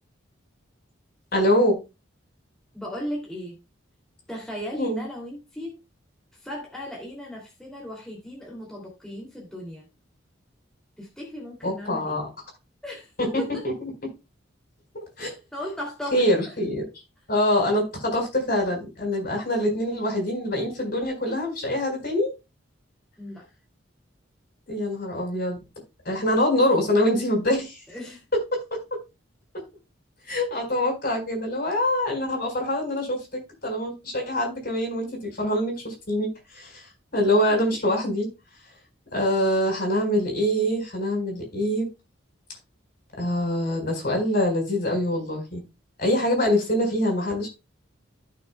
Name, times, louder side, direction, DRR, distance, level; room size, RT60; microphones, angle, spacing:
voice 1, 1.3-1.8 4.8-5.0 11.6-12.3 14.9-15.4 16.1-16.8 17.3-22.3 24.7-25.6 26.0-27.8 28.5-28.8 30.3-38.3 39.1-41.9 43.2-45.6 46.0-47.5, left 1 dB, 50° left, 1 dB, 4.5 m, -24 dB
voice 2, 2.7-3.6 4.3-5.8 6.3-9.9 11.0-12.2 12.8-13.6 15.3-16.5 23.2-23.4 27.9-28.2 37.5-37.8, equal, 5° left, -3 dB, 2.6 m, -36 dB
15.0 x 6.3 x 2.3 m, 0.26 s
head